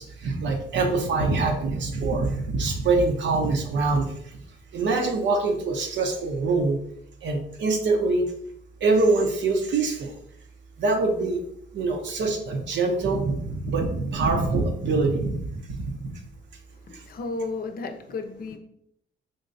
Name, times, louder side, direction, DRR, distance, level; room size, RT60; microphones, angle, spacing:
voice 1, 0.0-4.1 4.7-6.8 7.2-8.2 8.8-10.1 10.8-11.4 11.7-16.0, right 3 dB, 65° right, 3 dB, 0.8 m, -24 dB
voice 2, 16.8-18.6, left 3 dB, 50° left, 6 dB, 0.5 m, -33 dB
3.9 x 2.9 x 2.6 m, 0.71 s
cardioid pair, 90°, 20 cm